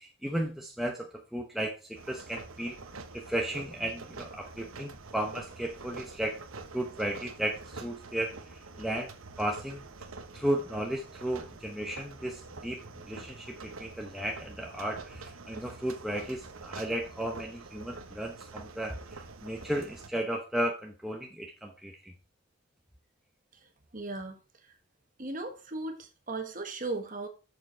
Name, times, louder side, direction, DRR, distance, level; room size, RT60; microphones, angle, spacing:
voice 1, 0.0-2.8 3.1-6.4 6.7-9.8 10.3-12.8 13.1-22.1, right 1 dB, ahead, 0.8 m, -34 dB
sound 1, 2.0-20.1, right 3 dB, 75° right, 0.9 m, -46 dB
voice 2, 23.5-24.8 25.2-27.3, right 2 dB, 40° right, 1.4 m, -38 dB
7.0 x 6.8 x 4.4 m
head